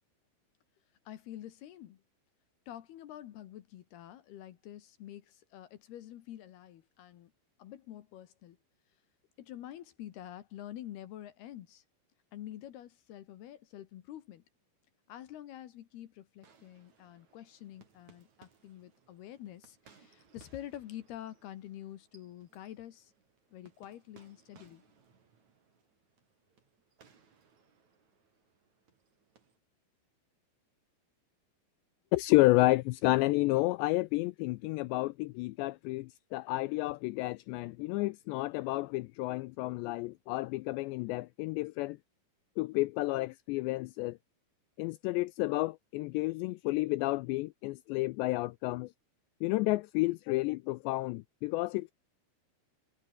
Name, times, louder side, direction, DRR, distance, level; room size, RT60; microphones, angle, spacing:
voice 1, 1.1-2.0 2.7-7.3 7.6-8.6 9.4-11.8 12.3-14.4 15.1-23.1 23.5-24.8, left 12 dB, 65° left, 3.0 m, -47 dB
sound 1, 16.4-29.6, right 6 dB, 40° right, 4.5 m, -65 dB
voice 2, 32.1-42.0 42.6-44.2 44.8-48.9 49.4-51.9, left 21 dB, 85° left, 2.5 m, -30 dB
omnidirectional pair, 5.5 m